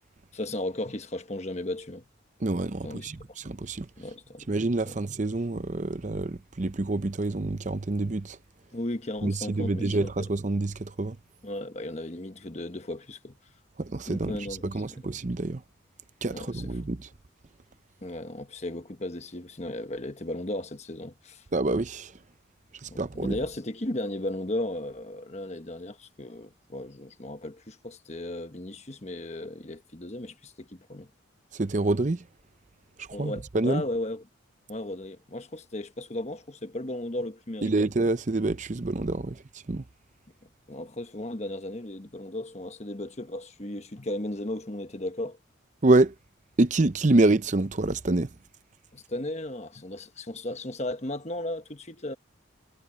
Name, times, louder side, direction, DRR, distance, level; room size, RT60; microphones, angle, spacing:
voice 1, 0.3-2.0 2.8-3.3 4.0-4.5 4.9-5.0 8.7-10.1 11.4-13.4 14.1-14.6 14.9-15.0 16.3-16.7 18.0-21.4 22.9-31.1 33.1-34.2 34.7-37.9 40.7-45.4 48.9-52.1, left 1 dB, 35° left, 1.2 m, -35 dB
voice 2, 2.4-3.9 4.5-8.4 9.2-11.2 13.8-14.4 14.6-15.6 16.2-17.1 21.5-22.1 22.8-23.4 31.5-32.2 33.0-33.8 37.6-39.8 45.8-46.1 46.6-48.3, right 2 dB, 40° right, 0.6 m, -26 dB
head